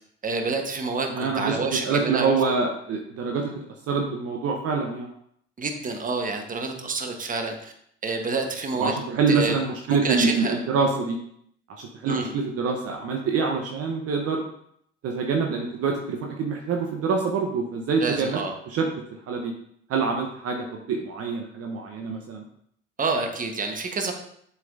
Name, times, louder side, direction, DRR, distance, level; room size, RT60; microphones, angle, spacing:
voice 1, 0.2-2.3 5.6-7.7 8.0-8.9 9.3-9.6 9.9-10.5 12.1-12.3 18.0-18.5 23.0-24.1, right 3 dB, 25° right, 4 dB, 1.3 m, -28 dB
voice 2, 1.1-3.5 3.9-5.1 6.7-6.9 8.8-11.2 11.8-14.4 15.0-18.4 18.7-18.9 19.3-19.5 19.9-22.4, right 4 dB, 45° right, 2 dB, 1.0 m, -26 dB
7.5 x 5.7 x 2.7 m, 0.70 s
hypercardioid pair, 65°, 33 cm